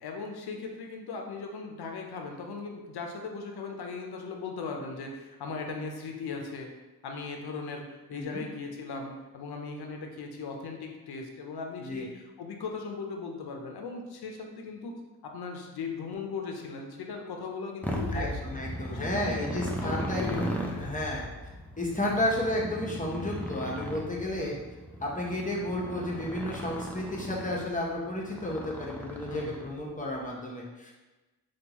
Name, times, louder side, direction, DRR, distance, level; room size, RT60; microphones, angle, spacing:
voice 1, 0.0-6.7 7.0-14.9 15.2-18.4 18.9-21.0 22.1-22.2 24.4-24.6 29.3-29.6, left 4 dB, 80° left, 2 dB, 0.6 m, -38 dB
voice 2, 8.1-8.5 11.8-12.0 18.1-21.3 21.8-24.6 25.0-30.9, left 1 dB, 20° left, -3 dB, 0.9 m, -32 dB
Motorcycle, 17.8-29.9, equal, 5° left, 0.5 m, -37 dB
3.6 x 2.4 x 2.9 m, 1.1 s
cardioid pair, 45°, 38 cm